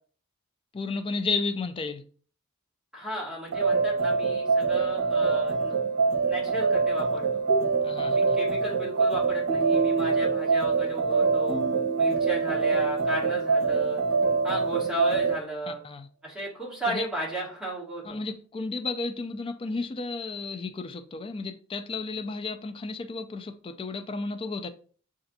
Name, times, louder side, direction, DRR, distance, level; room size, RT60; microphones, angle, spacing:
voice 1, 0.7-2.0 7.8-8.4 15.7-16.1 16.9-17.1 18.0-24.7, left 3 dB, 25° left, 0.3 m, -33 dB
voice 2, 2.9-5.7 6.3-7.4 8.1-11.6 12.0-14.0 14.4-15.8 16.2-18.2, right 1 dB, 5° right, 2.0 m, -34 dB
sound 1, 3.5-15.4, right 4 dB, 65° right, 0.8 m, -24 dB
6.7 x 2.5 x 2.6 m
head